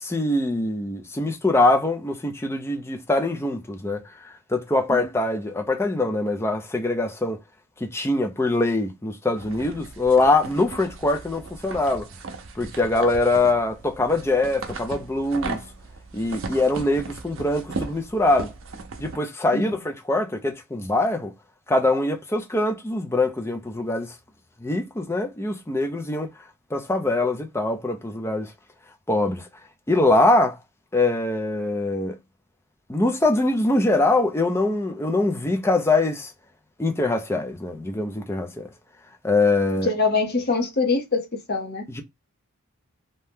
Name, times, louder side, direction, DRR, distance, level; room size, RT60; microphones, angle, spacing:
voice 1, 0.0-4.0 4.5-7.4 7.8-12.1 12.6-15.6 16.1-18.5 19.0-21.3 21.7-24.1 24.6-26.3 26.7-28.5 29.1-29.5 29.9-30.6 30.9-32.2 32.9-36.3 36.8-38.7 39.2-39.9 42.0-42.1, left 2 dB, 10° left, 0.4 m, -23 dB
sound 1, 9.4-19.2, right 3 dB, 65° right, 0.6 m, -37 dB
voice 2, 39.8-41.8, left 3 dB, 45° left, 0.8 m, -24 dB
2.7 x 2.2 x 3.3 m
head